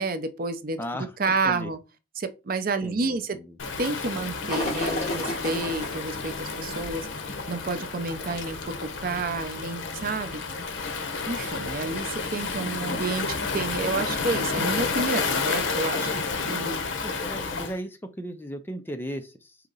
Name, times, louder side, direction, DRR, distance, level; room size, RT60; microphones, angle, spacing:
voice 1, 0.0-0.8 1.2-1.8 2.2-3.4 3.8-7.1 7.5-10.4 11.2-16.8, right 3 dB, 50° right, 0.6 m, -30 dB
voice 2, 0.8-1.7 2.8-3.6 12.8-13.4 17.0-19.6, equal, 10° left, 0.4 m, -37 dB
Waves surf, 3.6-17.7, left 4 dB, 80° left, 0.8 m, -30 dB
sound 1, 4.5-16.3, left 1 dB, 35° left, 2.1 m, -40 dB
4.9 x 2.8 x 3.8 m
head